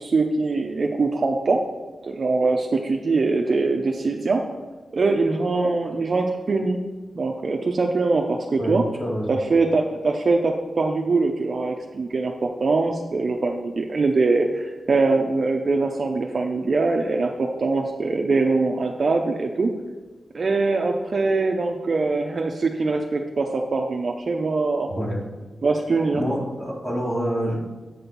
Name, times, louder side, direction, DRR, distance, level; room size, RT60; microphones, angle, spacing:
voice 1, 0.0-1.6 2.0-4.4 4.9-6.8 7.1-8.8 9.3-19.7 20.3-24.9 25.6-26.2, right 3 dB, 55° right, 2 dB, 0.6 m, -22 dB
voice 2, 9.0-9.3 24.9-25.2 26.1-27.6, equal, 25° left, -4 dB, 1.9 m, -27 dB
8.0 x 4.3 x 5.3 m, 1.2 s
cardioid pair, 70°, 0 cm